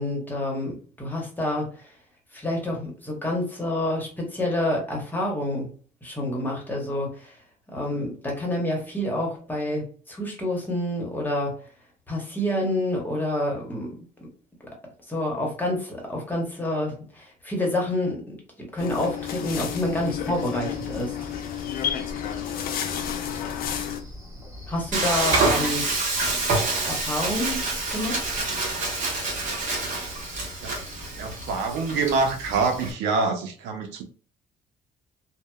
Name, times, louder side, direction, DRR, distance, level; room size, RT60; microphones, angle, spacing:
voice 1, 0.0-1.7 2.3-5.7 6.0-7.4 7.7-11.5 12.1-14.0 15.1-18.2 18.7-21.1 24.7-25.8 26.6-27.7 27.9-28.2, left 1 dB, 10° left, 1.0 m, -28 dB
Cricket, 18.7-33.0, left 1 dB, 15° right, 1.1 m, -42 dB
sound 1, 18.8-24.0, left 9 dB, 60° left, 0.5 m, -31 dB
Frying (food), 24.9-32.9, right 3 dB, 50° right, 0.9 m, -27 dB
voice 2, 31.2-34.0, right 4 dB, 90° right, 0.5 m, -25 dB
2.7 x 2.0 x 2.2 m
cardioid pair, 110°, 17 cm